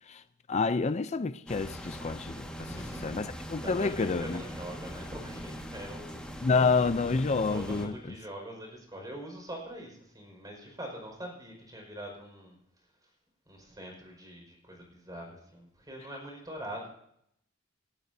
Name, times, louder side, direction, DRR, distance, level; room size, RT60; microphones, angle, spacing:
voice 1, 0.5-2.7 3.0-4.4 6.4-7.9, left 4 dB, 35° left, 0.5 m, -28 dB
sound 1, 1.5-7.9, equal, 5° left, 1.7 m, -41 dB
voice 2, 2.5-6.2 6.6-7.0 7.5-12.6 13.5-16.9, equal, 20° right, 5.1 m, -43 dB
28.5 x 12.0 x 2.7 m
head